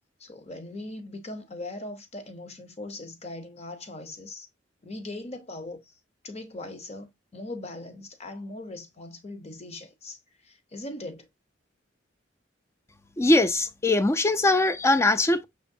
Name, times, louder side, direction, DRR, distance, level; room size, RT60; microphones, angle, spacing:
voice 1, 0.2-4.5 4.8-5.9 6.2-11.3, left 2 dB, 35° left, 0.7 m, -40 dB
voice 2, 13.2-15.4, left 2 dB, 15° left, 0.3 m, -21 dB
5.7 x 3.0 x 2.6 m
head